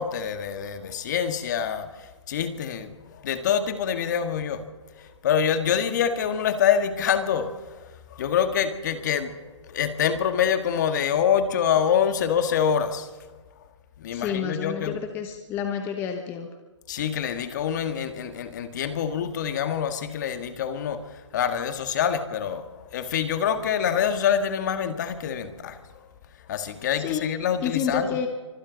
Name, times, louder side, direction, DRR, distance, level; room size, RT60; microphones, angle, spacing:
voice 1, 0.0-4.6 5.0-7.8 8.1-13.1 14.0-15.0 16.9-25.8 26.5-28.2, left 8 dB, 35° left, 8 dB, 1.7 m, -26 dB
voice 2, 14.1-16.5 27.0-27.3 27.6-28.3, left 7 dB, 15° left, 5 dB, 1.1 m, -29 dB
28.0 x 25.0 x 4.0 m, 1.3 s
hypercardioid pair, 155°, 16 cm